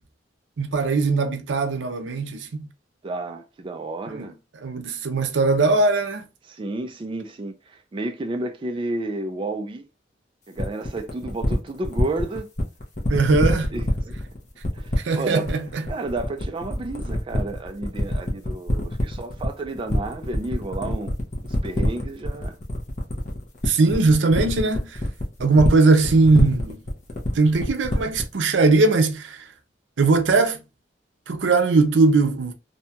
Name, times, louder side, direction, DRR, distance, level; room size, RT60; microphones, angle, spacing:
voice 1, 0.6-2.7 4.1-4.3 4.6-6.3 13.1-13.7 15.0-15.8 23.7-25.0 25.4-26.8 27.3-29.4 30.0-30.6 31.3-32.5, right 3 dB, 80° right, 0.5 m, -20 dB
voice 2, 3.0-4.4 6.4-9.9 10.5-12.5 13.7-14.2 14.7-15.5 15.9-21.1 21.4-22.6, right 2 dB, 30° right, 0.3 m, -31 dB
sound 1, 10.6-28.3, left 1 dB, 40° left, 0.7 m, -25 dB
2.7 x 2.2 x 2.7 m
head